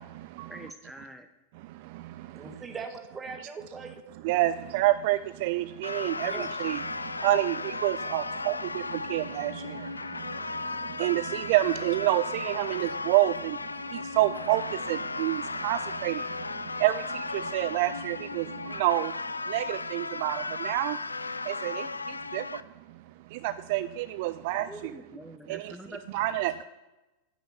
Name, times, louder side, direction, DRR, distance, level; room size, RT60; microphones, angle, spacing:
voice 1, 0.5-1.3 24.7-26.0, right 1 dB, ahead, 6 dB, 0.7 m, -44 dB
voice 2, 2.3-4.0 6.2-6.5, right 4 dB, 20° right, 5 dB, 1.4 m, -40 dB
voice 3, 4.2-6.8 7.2-7.5 7.8-8.5 9.1-9.5 11.0-13.3 14.2-14.6 14.9-16.1 16.8-16.9 17.5-18.4 18.8-19.1 19.5-21.0 21.6-21.7 22.3-22.4 23.7-24.7 26.1-26.6, right 16 dB, 50° right, 14 dB, 0.3 m, -27 dB
sound 1, 5.8-22.6, left 3 dB, 80° left, 0.3 m, -35 dB
10.0 x 5.8 x 7.3 m, 1.0 s
figure-of-eight pair, 90°, 0 cm